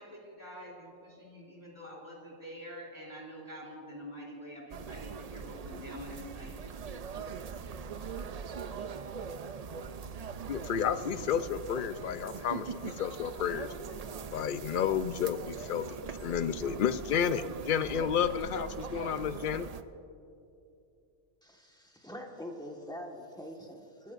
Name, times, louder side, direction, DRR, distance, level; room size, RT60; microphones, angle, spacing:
voice 1, 0.0-6.6, equal, 15° right, -3 dB, 3.2 m, -46 dB
sound 1, 4.7-19.8, right 6 dB, 55° right, 0.4 m, -41 dB
voice 2, 10.5-13.7 14.3-19.7, left 8 dB, 60° left, 12 dB, 0.5 m, -31 dB
voice 3, 21.4-24.1, equal, 5° left, 0 dB, 1.3 m, -44 dB
29.0 x 14.0 x 2.5 m, 2.7 s
omnidirectional pair, 1.3 m